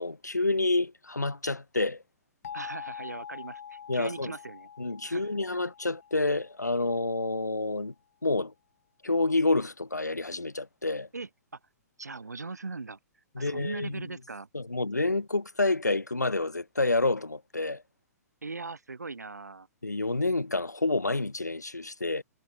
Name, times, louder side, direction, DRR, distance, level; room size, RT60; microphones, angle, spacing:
voice 1, 0.0-2.0 3.9-4.3 4.8-7.9 8.2-8.5 9.0-11.1 13.4-14.0 14.5-17.8 19.8-22.2, left 2 dB, 90° left, 0.5 m, -28 dB
sound 1, 2.4-7.1, left 8 dB, 60° left, 0.7 m, -45 dB
voice 2, 2.5-4.7 5.0-5.6 11.1-11.6 12.0-14.5 18.4-19.7, right 3 dB, 80° right, 1.4 m, -40 dB
figure-of-eight pair, 115°, 9 cm